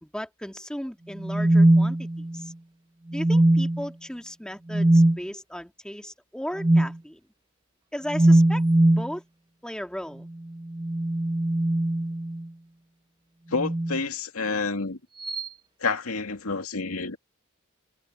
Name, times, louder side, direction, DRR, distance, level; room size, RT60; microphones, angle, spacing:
voice 1, 0.0-2.5 3.1-7.2 7.9-8.6 8.9-9.2 9.6-10.3, equal, 5° left, 2.0 m, -36 dB
sound 1, 1.2-2.5 3.1-3.9 4.7-5.2 6.6-7.0 8.1-9.1 10.6-12.5 13.5-14.0 15.2-15.5, right 1 dB, 20° right, 0.7 m, -21 dB
voice 2, 13.5-15.0 15.8-17.2, left 4 dB, 85° left, 2.3 m, -29 dB
head